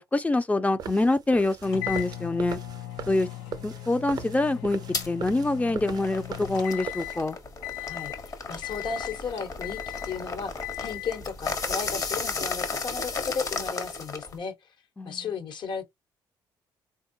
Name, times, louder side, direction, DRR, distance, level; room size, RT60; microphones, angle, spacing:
voice 1, 0.0-2.6 3.1-3.3 3.6-4.8 5.1-7.4 15.0-15.2, left 2 dB, 15° left, 0.4 m, -25 dB
sound 1, 0.8-7.2, right 8 dB, 55° right, 0.5 m, -40 dB
sound 2, 1.6-7.3 7.6-8.2 8.6-9.3 9.6-10.2 10.6-11.2, left 14 dB, 90° left, 0.7 m, -38 dB
sound 3, 4.9-5.1 5.6-14.4, left 4 dB, 40° left, 1.0 m, -34 dB
voice 2, 7.8-10.5 10.8-14.5 15.0-15.9, left 5 dB, 65° left, 1.2 m, -35 dB
3.6 x 2.2 x 2.7 m
supercardioid pair, 75°, 8 cm